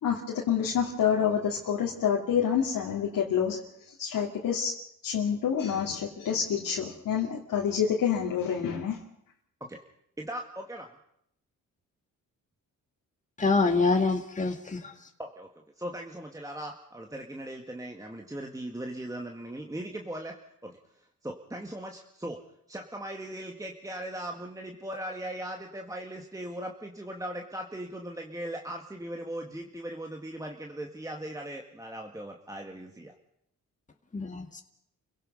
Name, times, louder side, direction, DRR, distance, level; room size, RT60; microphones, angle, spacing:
voice 1, 0.0-3.6 4.0-4.7 5.0-9.0, left 8 dB, 75° left, -3 dB, 2.8 m, -27 dB
voice 2, 10.2-10.9 15.2-15.5 15.8-20.4 20.6-20.8 21.2-22.4 22.7-33.1, right 1 dB, 10° right, 2 dB, 1.9 m, -39 dB
voice 3, 13.4-14.9 34.1-34.6, left 3 dB, 20° left, 3 dB, 2.1 m, -26 dB
29.0 x 17.0 x 5.6 m, 0.75 s
cardioid pair, 85°, 34 cm